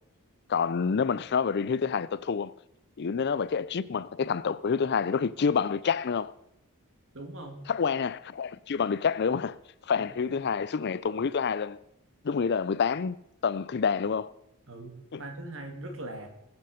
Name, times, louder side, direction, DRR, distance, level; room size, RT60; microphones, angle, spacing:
voice 1, 0.5-2.5 3.0-6.3 7.7-9.6 9.9-11.8 12.2-13.2 13.4-14.3 15.1-15.2, left 6 dB, 50° left, 0.4 m, -28 dB
voice 2, 7.1-7.7 10.0-10.1 14.7-16.3, right 2 dB, 60° right, 2.5 m, -41 dB
20.5 x 8.1 x 5.1 m
head